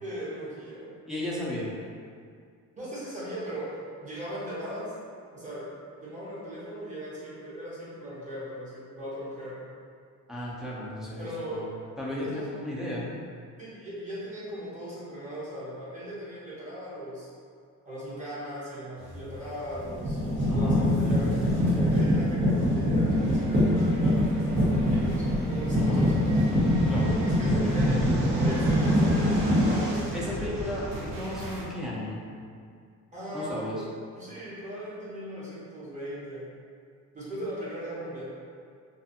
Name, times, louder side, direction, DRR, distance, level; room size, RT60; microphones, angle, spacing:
voice 1, 0.0-0.9 2.8-4.9 5.3-5.6 6.0-9.6 11.2-11.7 12.2-12.5 13.6-17.3 17.8-20.2 20.5-21.4 21.7-26.3 27.0-30.1 33.1-33.8 34.2-36.5 37.1-38.3, equal, 25° right, -9 dB, 0.8 m, -38 dB
voice 2, 1.1-1.7 10.3-11.6 12.0-13.1 20.5-20.8 25.8-26.1 26.9-27.2 30.1-32.2 33.3-33.8, left 1 dB, ahead, -7 dB, 0.4 m, -34 dB
sound 1, 19.1-19.3 19.7-29.7, equal, 60° right, 1.0 m, -24 dB
sound 2, 23.1-31.7, right 2 dB, 85° right, 0.6 m, -38 dB
2.5 x 2.4 x 2.6 m, 2.2 s
cardioid pair, 145°, 32 cm